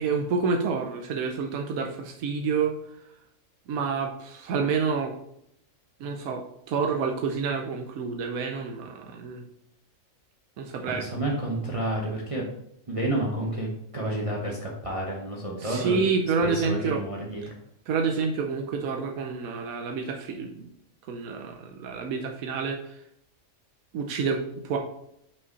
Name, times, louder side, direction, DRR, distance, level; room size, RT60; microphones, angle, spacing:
voice 1, 0.0-2.7 3.7-5.1 6.0-9.4 10.6-11.0 15.6-17.0 17.9-20.7 21.1-22.9 23.9-24.8, right 5 dB, 85° right, 3 dB, 1.2 m, -28 dB
voice 2, 10.9-12.4 12.9-16.0 16.4-17.4, right 1 dB, 25° right, -3 dB, 1.0 m, -30 dB
5.5 x 5.3 x 4.0 m, 0.75 s
omnidirectional pair, 1.4 m